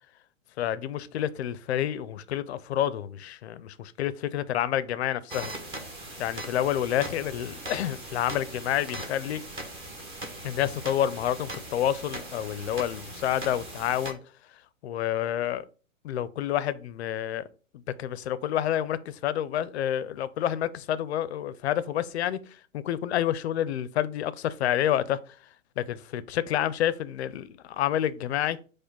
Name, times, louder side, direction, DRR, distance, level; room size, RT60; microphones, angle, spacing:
voice 1, 0.6-5.5 6.2-9.4 10.4-14.2 14.8-15.6 16.0-17.4 18.0-22.4 22.7-25.2 25.8-28.6, left 11 dB, 55° left, 0.5 m, -28 dB
sound 1, 5.3-14.1, right 1 dB, 15° right, 0.6 m, -40 dB
4.8 x 2.2 x 4.4 m
hypercardioid pair, 125°, 40 cm